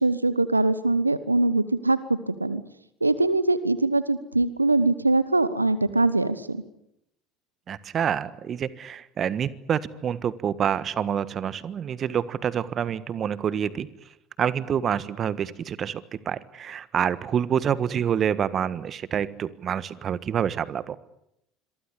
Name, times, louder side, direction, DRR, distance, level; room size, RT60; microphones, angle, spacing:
voice 1, 0.0-2.6 3.0-6.6, right 2 dB, 90° right, 16 dB, 1.1 m, -22 dB
voice 2, 7.7-13.9 14.4-21.0, right 8 dB, 40° right, 17 dB, 1.4 m, -27 dB
26.5 x 23.5 x 8.5 m, 0.80 s
figure-of-eight pair, 65°, 0 cm